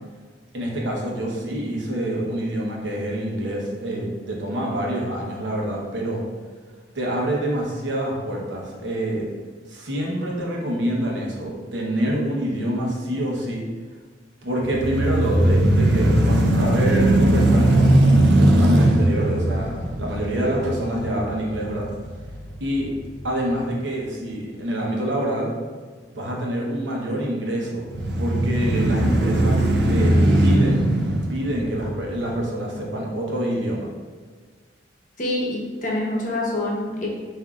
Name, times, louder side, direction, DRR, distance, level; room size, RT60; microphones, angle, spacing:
voice 1, 0.5-6.2 6.9-9.3 9.7-13.6 14.4-21.9 22.6-22.9 23.2-25.5 26.1-27.9 28.2-30.9 31.3-33.9, right 1 dB, 90° right, -2 dB, 1.0 m, -26 dB
sound 1, 14.6-22.7 23.2-23.3 27.9-32.3, right 1 dB, 75° right, 0.6 m, -19 dB
voice 2, 35.2-37.1, left 1 dB, 45° left, -3 dB, 0.9 m, -26 dB
7.3 x 2.7 x 2.4 m, 1.5 s
head